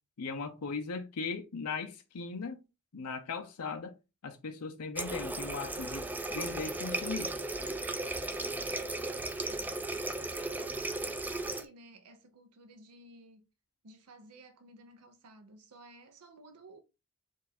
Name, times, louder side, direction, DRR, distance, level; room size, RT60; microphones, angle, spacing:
voice 1, 0.2-2.6 2.9-3.9 4.2-7.3, left 4 dB, 90° left, 0.6 m, -38 dB
Water tap faucet, 5.0-11.6, right 2 dB, 10° right, 0.3 m, -36 dB
voice 2, 8.4-9.7 10.2-13.4 13.8-16.8, right 2 dB, 90° right, 0.7 m, -55 dB
4.6 x 2.4 x 4.1 m
head